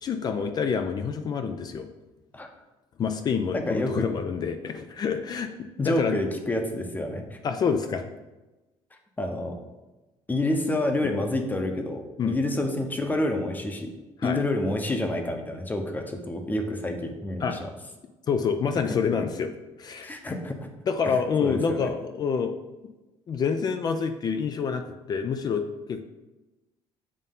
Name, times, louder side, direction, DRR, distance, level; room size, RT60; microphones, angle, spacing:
voice 1, 0.0-1.9 3.0-6.2 7.4-8.1 12.2-12.4 14.2-14.4 17.4-17.6 18.3-19.5 19.8-20.1 20.9-22.5 23.3-26.0, left 6 dB, 40° left, 8 dB, 0.5 m, -27 dB
voice 2, 3.5-4.1 5.8-7.4 9.2-9.6 10.3-13.9 14.2-17.6 20.0-20.7 21.1-21.9, left 1 dB, 15° left, 5 dB, 0.8 m, -28 dB
7.4 x 2.7 x 5.4 m, 1.1 s
cardioid pair, 120°, 11 cm